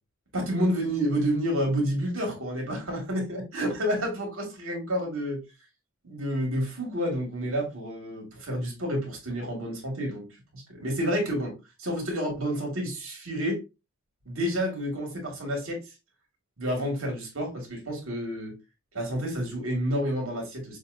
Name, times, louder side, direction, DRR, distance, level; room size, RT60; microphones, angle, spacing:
voice 1, 0.3-5.4 6.0-10.3 10.5-11.5 11.8-13.6 14.3-15.8 16.6-18.5 18.9-20.8, equal, 65° right, 2.0 m, -29 dB
6.4 x 2.8 x 2.6 m
head